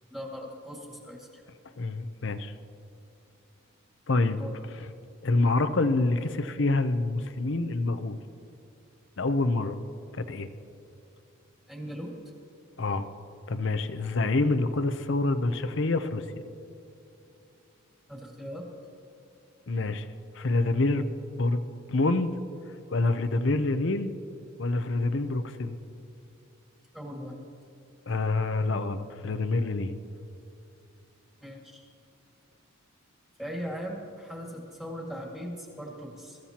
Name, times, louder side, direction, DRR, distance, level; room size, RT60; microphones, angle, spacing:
voice 1, 0.1-1.4 4.4-4.6 11.7-12.1 18.1-18.7 26.9-27.4 31.4-31.9 33.4-36.4, equal, ahead, -1 dB, 2.0 m, -39 dB
voice 2, 1.8-2.5 4.1-4.4 5.2-8.2 9.2-9.8 10.1-10.5 12.8-13.1 13.5-16.2 19.7-20.1 20.3-21.1 21.3-21.6 21.9-22.3 22.9-24.1 24.6-25.8 28.1-30.0, left 2 dB, 60° left, 10 dB, 0.7 m, -26 dB
22.5 x 14.5 x 2.9 m, 2.8 s
head